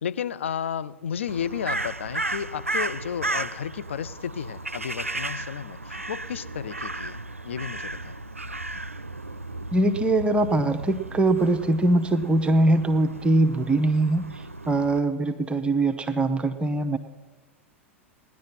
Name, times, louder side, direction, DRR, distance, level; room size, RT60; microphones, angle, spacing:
voice 1, 0.0-7.2 7.4-8.2, left 8 dB, 65° left, 13 dB, 0.6 m, -32 dB
Crow, 1.3-15.0, right 2 dB, 90° right, 0.4 m, -34 dB
voice 2, 9.7-17.0, right 2 dB, 15° right, 6 dB, 0.8 m, -22 dB
18.0 x 10.5 x 5.7 m, 1.3 s
figure-of-eight pair, 90°, 7 cm